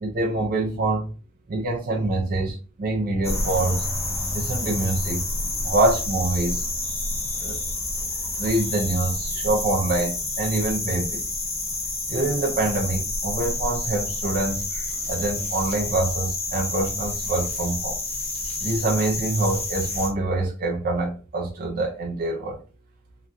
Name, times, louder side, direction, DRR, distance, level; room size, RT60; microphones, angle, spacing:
voice 1, 0.0-1.1 1.5-3.9 4.3-5.2 5.6-6.6 7.4-7.6 8.4-11.2 12.1-14.6 15.1-18.0 18.6-22.6, right 2 dB, 40° right, -1 dB, 0.4 m, -25 dB
sound 1, 3.2-20.1, left 2 dB, 25° left, 0.8 m, -29 dB
2.9 x 2.2 x 2.5 m, 0.35 s
head